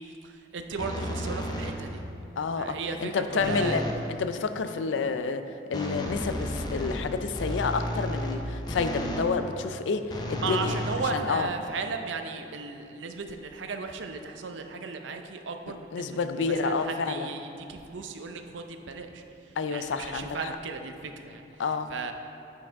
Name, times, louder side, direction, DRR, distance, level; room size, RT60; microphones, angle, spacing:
voice 1, 0.0-2.0 2.6-3.8 10.4-16.2 16.5-21.4 21.9-22.1, right 4 dB, 80° right, 6 dB, 0.6 m, -36 dB
sound 1, 0.8-2.0 3.4-4.1 5.7-9.3 10.1-11.6, equal, 20° left, 0.5 m, -33 dB
voice 2, 2.4-2.7 3.0-3.8 4.2-5.4 5.7-10.8 11.1-11.5 15.9-17.3 19.6-20.5 21.6-21.9, left 4 dB, 80° left, 9 dB, 0.4 m, -29 dB
8.6 x 4.7 x 4.6 m, 2.8 s
head